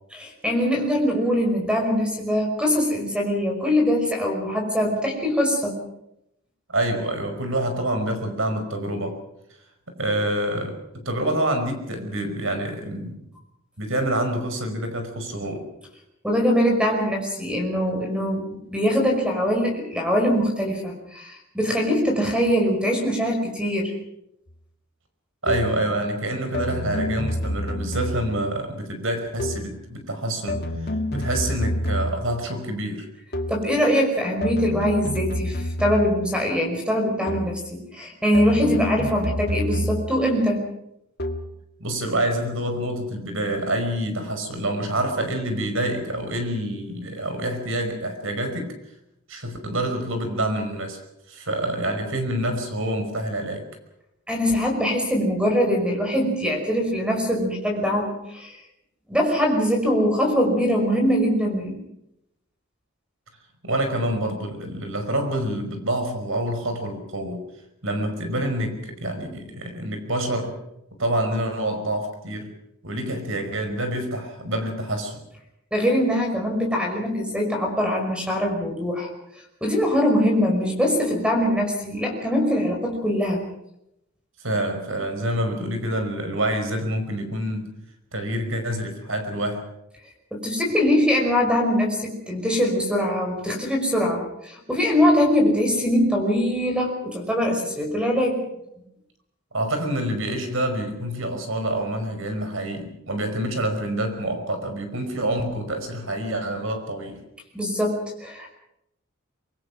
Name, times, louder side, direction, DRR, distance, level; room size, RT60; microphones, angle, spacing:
voice 1, 0.1-5.8 16.2-23.9 33.5-40.6 54.3-58.6 59.1-61.8 75.7-79.1 79.6-83.4 90.3-98.4 107.5-108.5, equal, 5° right, 2 dB, 5.5 m, -22 dB
voice 2, 6.7-9.2 10.0-13.2 13.8-15.7 25.4-33.1 41.8-48.7 49.3-51.0 51.3-53.7 63.6-67.4 67.8-70.5 71.0-72.5 72.8-75.2 84.4-87.7 88.1-89.7 99.5-107.2, right 1 dB, 70° right, 6 dB, 5.4 m, -27 dB
sound 1, 25.5-25.9 26.5-28.5 29.4-29.8 30.5-32.4 33.3-33.7 34.4-36.3 37.3-37.7 38.3-40.3 41.2-41.6, left 1 dB, 50° left, 2.1 m, -28 dB
25.0 x 23.0 x 6.1 m, 0.83 s
head